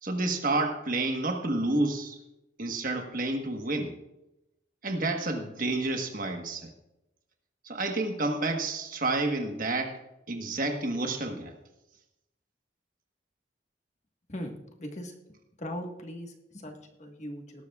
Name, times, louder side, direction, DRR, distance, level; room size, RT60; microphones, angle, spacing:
voice 1, 0.0-2.2 2.6-3.9 4.8-6.7 7.6-10.0 10.3-11.5, right 2 dB, 45° right, 4 dB, 1.3 m, -29 dB
voice 2, 14.3-15.1 15.6-17.6, equal, 40° left, 3 dB, 1.4 m, -39 dB
18.5 x 12.0 x 2.4 m, 0.93 s
head